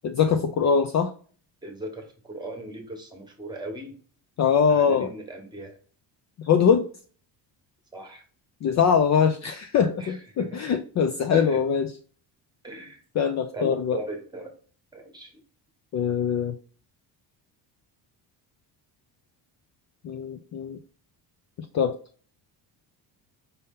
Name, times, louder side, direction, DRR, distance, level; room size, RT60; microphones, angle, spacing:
voice 1, 0.0-1.1 4.4-5.1 6.4-6.9 8.6-12.0 13.1-14.0 15.9-16.6 20.0-20.8 21.7-22.0, left 7 dB, 40° left, 7 dB, 0.4 m, -22 dB
voice 2, 1.6-3.9 4.7-5.7 7.9-8.2 10.0-10.5 11.3-11.6 12.6-13.0 13.5-14.5 14.9-15.3, right 1 dB, 10° right, 2 dB, 1.3 m, -38 dB
5.4 x 2.7 x 3.6 m, 0.42 s
cardioid pair, 135°, 43 cm